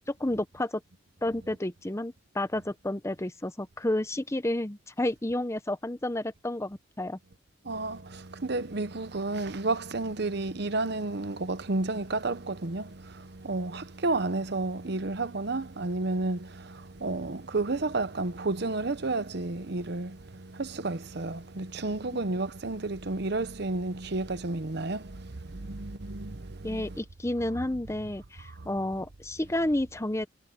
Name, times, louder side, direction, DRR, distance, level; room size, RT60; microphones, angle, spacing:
voice 1, 0.1-0.8 1.2-7.2 26.6-30.3, left 1 dB, 15° left, 0.7 m, -31 dB
voice 2, 7.6-27.0 28.6-29.0, right 2 dB, 55° right, 0.9 m, -32 dB
head